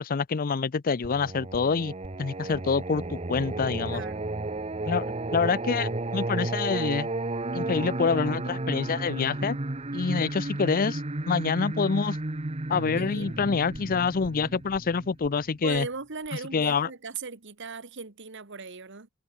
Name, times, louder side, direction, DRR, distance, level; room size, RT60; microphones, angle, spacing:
voice 1, 0.0-1.9 2.2-4.0 4.8-7.1 7.5-9.6 9.9-11.0 11.3-12.2 12.7-15.9 16.5-16.9, left 5 dB, 45° left, 0.5 m, -26 dB
Singing, 1.0-15.8, right 2 dB, 30° right, 1.1 m, -33 dB
voice 2, 3.9-4.3 13.0-13.4 15.6-19.1, right 4 dB, 60° right, 1.7 m, -38 dB
head